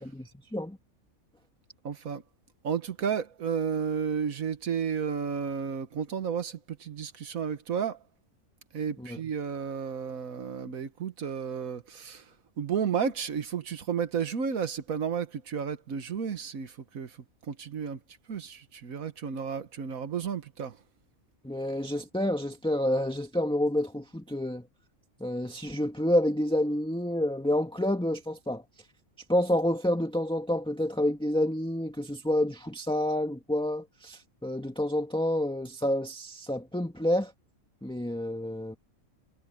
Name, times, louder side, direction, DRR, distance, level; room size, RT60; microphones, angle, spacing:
voice 1, 0.0-0.8 9.0-9.2 21.4-24.7 25.2-28.6 29.3-37.3 37.8-38.8, left 1 dB, 5° left, 1.8 m, -29 dB
voice 2, 1.8-2.2 2.6-8.0 8.7-12.2 12.6-17.2 17.5-18.0 18.3-20.8, right 7 dB, 75° right, 1.6 m, -32 dB
omnidirectional pair, 1.5 m